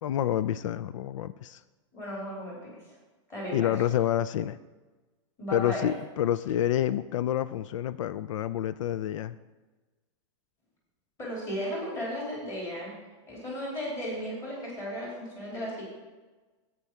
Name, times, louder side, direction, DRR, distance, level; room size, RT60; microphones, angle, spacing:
voice 1, 0.0-1.6 3.5-4.6 5.5-9.4, left 11 dB, 90° left, 16 dB, 0.4 m, -28 dB
voice 2, 1.9-2.7 3.3-3.7 5.4-5.9 11.2-12.9 13.3-15.8, equal, 15° left, -4 dB, 2.9 m, -35 dB
10.5 x 8.3 x 4.3 m, 1.2 s
supercardioid pair, 180°, 16 cm